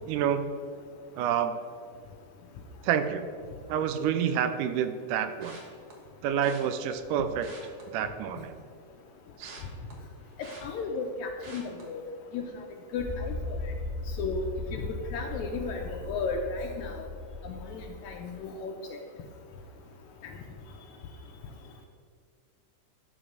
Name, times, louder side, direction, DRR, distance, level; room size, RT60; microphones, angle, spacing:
voice 1, 0.1-0.5 1.2-1.5 2.8-3.3 3.7-5.6 6.2-7.5 7.9-8.5 9.4-9.6, right 8 dB, 80° right, 9 dB, 2.1 m, -28 dB
sound 1, 5.4-5.9 6.4-6.6 7.3-8.6 8.9-11.1 11.4-11.8 12.3-12.6 12.8-12.9, right 2 dB, 55° right, 2.1 m, -49 dB
voice 2, 10.4-12.0 12.3-12.4 12.9-13.7 14.2-14.4 14.7-17.1 17.4-18.7, left 4 dB, 80° left, 3 dB, 1.7 m, -34 dB
sound 2, 13.0-18.3, left 2 dB, 10° right, 0.9 m, -38 dB
11.5 x 3.9 x 6.5 m, 2.1 s
omnidirectional pair, 3.7 m